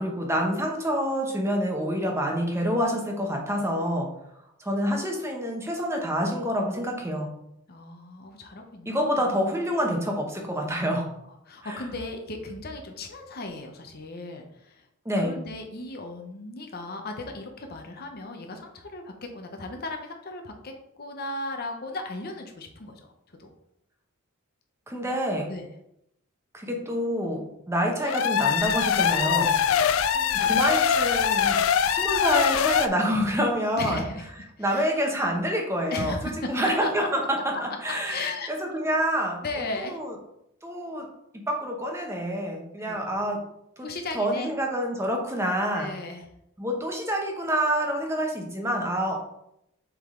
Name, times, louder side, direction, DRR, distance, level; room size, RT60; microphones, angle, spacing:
voice 1, 0.0-4.1 4.6-7.3 8.8-11.1 11.6-11.8 15.0-15.4 24.9-25.5 26.5-29.5 30.4-31.6 31.9-34.0 34.6-38.3 38.6-39.4 39.8-40.1 40.6-41.1 41.3-43.4 43.8-43.9 44.1-45.9 46.6-49.1, equal, 10° right, 1 dB, 1.0 m, -27 dB
voice 2, 7.7-9.0 9.3-9.5 11.4-14.8 15.2-23.0 23.4-23.5 25.5-25.7 28.9-30.8 33.8-34.2 34.6-34.9 35.9-36.9 38.0-38.5 39.4-40.0 42.9-43.2 43.8-44.5 45.7-46.3, left 2 dB, 45° left, 4 dB, 0.8 m, -36 dB
sound 1, 28.0-32.9, left 8 dB, 70° left, 0.4 m, -23 dB
7.3 x 3.7 x 3.7 m, 0.80 s
head